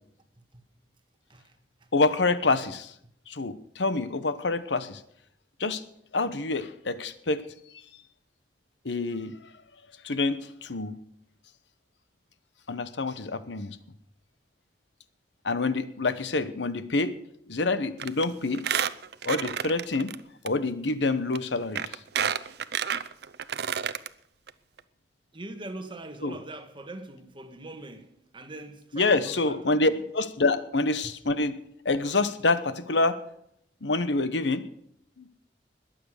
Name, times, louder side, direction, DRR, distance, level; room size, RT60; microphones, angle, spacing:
voice 1, 1.3-1.9 25.3-30.0 31.0-31.1, right 2 dB, 30° right, 1.6 m, -43 dB
voice 2, 1.9-2.9 3.3-5.0 5.6-5.8 6.1-7.4 8.8-9.4 10.0-11.0 12.7-13.8 15.4-17.1 17.5-18.6 19.2-20.1 20.4-22.0 26.2-26.4 28.9-31.6 31.8-33.2 33.8-34.6 35.2-35.3, left 3 dB, 85° left, 1.0 m, -27 dB
Squeak, 18.0-18.2 18.5-20.2 20.5-20.6 21.3-21.4 21.8-24.1 24.5-24.6 24.8-24.9, right 8 dB, 65° right, 0.7 m, -29 dB
21.0 x 7.8 x 6.5 m
head